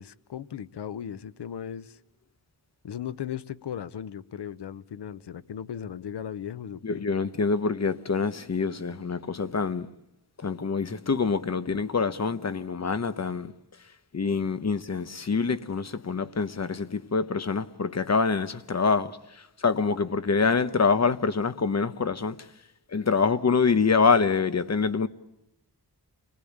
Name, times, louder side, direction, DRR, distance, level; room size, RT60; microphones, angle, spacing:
voice 1, 0.0-2.0 2.8-7.1, left 9 dB, 85° left, 0.9 m, -37 dB
voice 2, 6.8-9.9 10.4-13.5 14.1-19.2 19.6-22.4 22.9-25.1, left 5 dB, 40° left, 1.1 m, -25 dB
28.0 x 20.0 x 8.7 m
wide cardioid pair, 105°, 40 cm